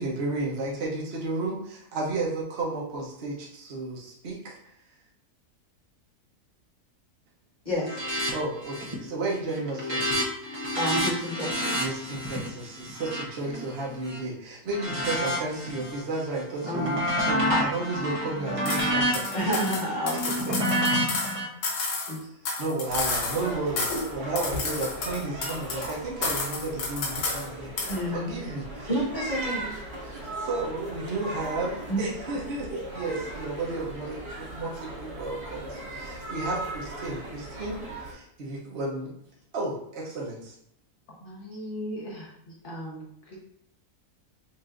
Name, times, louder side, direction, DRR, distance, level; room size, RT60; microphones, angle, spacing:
voice 1, 0.0-4.6 8.3-10.0 11.7-19.3 22.1-22.3 22.6-28.9 30.4-39.1 39.5-40.6, right 2 dB, 50° right, -4 dB, 1.0 m, -33 dB
voice 2, 7.6-8.0 10.8-11.9 16.7-17.0 17.5-17.6 19.3-20.6 21.2-21.4 22.1-22.2 23.9-24.0 27.9-28.3 28.9-29.7 30.0-30.1 31.9-32.0, equal, 30° left, -7 dB, 1.4 m, -29 dB
sound 1, 7.8-8.3 8.6-9.0 9.4-14.2 14.7-16.0 16.4-21.5, equal, 35° right, 0.6 m, -29 dB
sound 2, 18.7-18.9 19.1-21.3 21.6-23.5 23.8-24.1 24.4-25.9 26.2-27.5 27.8-28.0, left 3 dB, 80° left, 1.4 m, -31 dB
sound 3, 22.8-38.1, right 1 dB, 80° right, 2.1 m, -38 dB
voice 3, 41.2-43.4, equal, 50° left, -3 dB, 1.3 m, -38 dB
5.7 x 2.6 x 2.4 m, 0.72 s
omnidirectional pair, 1.7 m